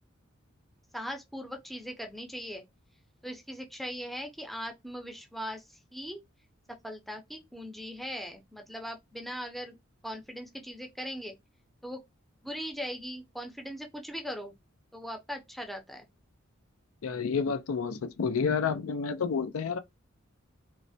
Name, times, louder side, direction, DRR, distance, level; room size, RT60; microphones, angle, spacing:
voice 1, 0.9-2.6 3.2-6.2 6.8-11.3 11.8-12.0 12.4-14.6 14.9-16.1, equal, ahead, 0.5 m, -40 dB
voice 2, 17.0-19.8, left 5 dB, 85° left, 0.4 m, -29 dB
3.1 x 2.1 x 2.6 m
head